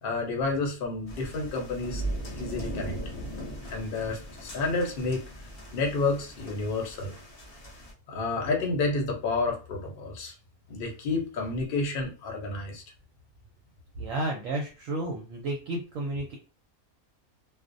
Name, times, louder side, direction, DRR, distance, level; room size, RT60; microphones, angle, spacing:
voice 1, 0.0-2.0 2.4-2.9 3.7-5.2 5.7-7.2 8.1-10.3 10.7-12.8, left 3 dB, 50° left, 1 dB, 0.7 m, -30 dB
sound 1, 1.1-7.9, right 1 dB, 65° left, 0.3 m, -39 dB
voice 2, 14.0-16.4, right 2 dB, 70° right, 1 dB, 0.9 m, -32 dB
2.4 x 2.0 x 2.5 m, 0.34 s
omnidirectional pair, 1.5 m